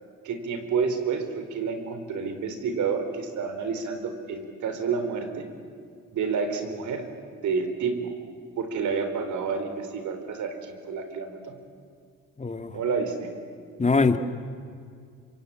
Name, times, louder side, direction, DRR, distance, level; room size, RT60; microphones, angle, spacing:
voice 1, 0.2-5.5 6.1-7.0 7.4-8.1 8.6-11.5 12.7-13.3, right 5 dB, 75° right, 7 dB, 4.0 m, -29 dB
voice 2, 12.4-12.7 13.8-14.2, left 4 dB, 25° left, 8 dB, 1.9 m, -22 dB
26.5 x 24.5 x 8.9 m, 2.3 s
cardioid pair, 90°, 30 cm